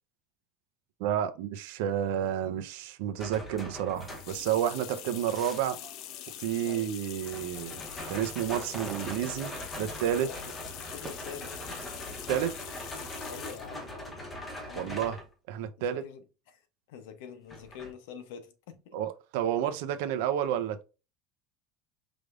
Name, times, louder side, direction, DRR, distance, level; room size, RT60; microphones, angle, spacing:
voice 1, 1.0-5.8 6.4-7.8 8.1-9.5 9.8-10.3 12.3-12.5 14.8-15.2 15.5-16.0 18.9-20.9, right 10 dB, 75° right, 0.6 m, -30 dB
sound 1, 3.2-4.5 7.2-15.3 17.5-17.9, equal, 10° left, 0.9 m, -42 dB
sound 2, 3.9-13.7, left 12 dB, 50° left, 0.4 m, -44 dB
sound 3, 5.1-7.3 7.8-10.1 10.4-12.3 12.9-13.9, right 3 dB, 15° right, 0.6 m, -50 dB
voice 2, 10.2-11.5 13.2-15.1 15.8-16.6 16.9-19.0, left 7 dB, 80° left, 0.9 m, -46 dB
4.9 x 3.4 x 2.5 m
cardioid pair, 170°, 0 cm